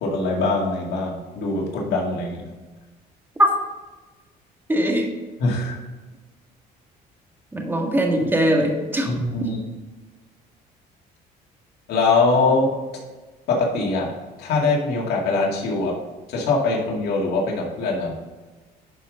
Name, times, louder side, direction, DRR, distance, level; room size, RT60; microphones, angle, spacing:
voice 1, 0.0-2.4 5.4-5.8 9.0-9.6 11.9-12.7 13.5-14.1 14.4-15.9 16.3-18.1, left 3 dB, 75° left, -2 dB, 2.1 m, -22 dB
voice 2, 4.7-5.1 7.5-9.1, equal, 10° right, 1 dB, 1.8 m, -20 dB
10.5 x 5.0 x 3.7 m, 1.3 s
cardioid pair, 110°, 17 cm